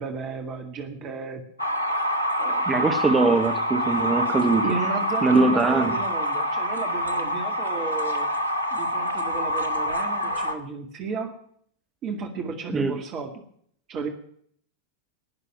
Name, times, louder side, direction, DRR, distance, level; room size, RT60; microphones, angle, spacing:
voice 1, 0.0-1.4 2.4-2.7 4.6-8.3 8.7-11.3 12.0-13.3 13.9-14.1, right 5 dB, 35° right, 5 dB, 2.0 m, -33 dB
sound 1, 1.6-10.6, equal, 85° left, 1.4 m, -26 dB
voice 2, 2.7-4.7 5.2-6.0 12.7-13.0, right 3 dB, 15° right, 7 dB, 1.2 m, -21 dB
19.5 x 6.8 x 9.0 m, 0.63 s
figure-of-eight pair, 90°, 0 cm